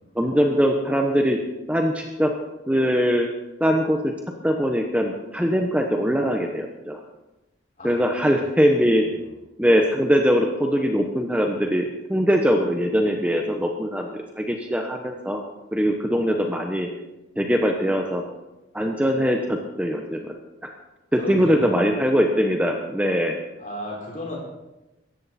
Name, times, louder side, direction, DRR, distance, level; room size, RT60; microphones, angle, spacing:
voice 1, 0.1-1.4 1.7-2.3 2.7-3.3 3.6-4.1 4.4-7.0 7.8-9.0 9.6-15.4 15.7-16.9 17.4-18.2 18.7-20.2 21.1-23.4, equal, 5° right, 2 dB, 1.1 m, -21 dB
voice 2, 7.8-8.3 8.8-8.9 21.1-21.9 23.6-24.4, left 1 dB, 40° left, -2 dB, 5.3 m, -35 dB
17.5 x 14.5 x 4.3 m, 0.99 s
head